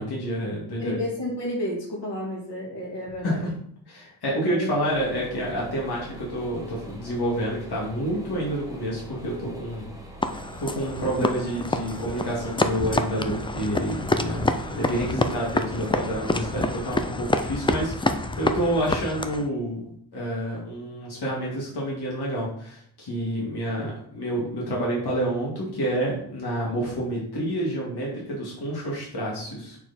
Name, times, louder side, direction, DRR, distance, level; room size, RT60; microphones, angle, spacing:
voice 1, 0.0-1.0 3.2-3.5 3.9-9.9 10.6-29.8, right 1 dB, 65° left, -5 dB, 2.4 m, -28 dB
voice 2, 0.8-3.4 4.5-4.7, left 1 dB, 85° left, -4 dB, 2.5 m, -31 dB
sound 1, 4.9-17.1, right 1 dB, 10° right, 1.3 m, -43 dB
sound 2, 10.2-19.5, left 2 dB, 15° left, 0.3 m, -27 dB
6.9 x 4.3 x 4.2 m, 0.63 s
wide cardioid pair, 140°, 41 cm